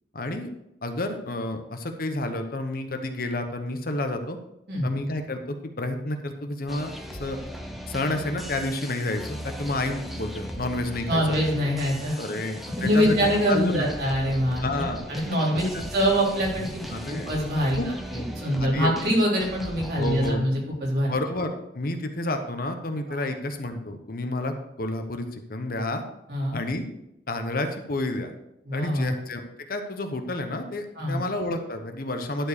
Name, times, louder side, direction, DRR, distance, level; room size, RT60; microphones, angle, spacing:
voice 1, 0.1-0.5 0.8-4.4 4.8-7.4 7.9-11.2 12.2-13.2 13.5-13.9 14.6-15.1 15.7-15.9 16.9-17.3 17.7-18.2 18.5-18.9 20.0-20.4 21.1-26.0 26.5-26.8 27.3-28.3 28.7-29.4 29.7-32.5, left 2 dB, 55° left, 6 dB, 1.0 m, -30 dB
sound 1, 6.7-20.3, equal, ahead, 0.8 m, -38 dB
voice 2, 11.1-12.2 12.8-14.8 15.1-15.7 15.9-17.8 18.1-20.5 20.8-21.1 23.1-23.2 26.3-26.6 28.6-29.1 31.0-31.2, equal, 60° right, -4 dB, 3.9 m, -24 dB
11.5 x 4.6 x 6.6 m, 0.85 s
head